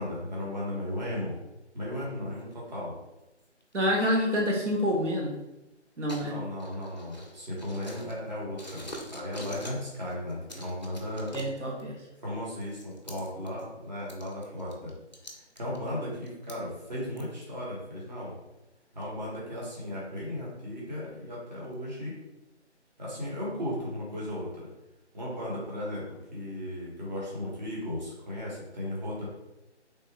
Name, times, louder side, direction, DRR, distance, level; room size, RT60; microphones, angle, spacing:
voice 1, 0.0-1.3 1.7-2.9 6.1-11.4 12.2-14.9 15.3-18.3 18.9-22.1 23.0-24.7 25.1-26.0 26.3-29.3, left 1 dB, 40° right, -6 dB, 1.1 m, -36 dB
sound 1, 2.3-2.5 3.4-4.0 4.7-4.8 6.1-8.3 8.6-9.8 10.1-11.9 12.5-13.6 14.0-16.5 17.2-17.3 17.8-17.9 19.0-19.1 19.7-19.8 20.2-20.3 20.8-20.9 21.3-21.7, equal, 40° left, 0.4 m, -45 dB
voice 2, 3.7-5.3 6.0-6.3 11.3-12.0, equal, 80° right, -1 dB, 1.0 m, -27 dB
3.3 x 2.1 x 3.3 m, 0.94 s
figure-of-eight pair, 170°, 35 cm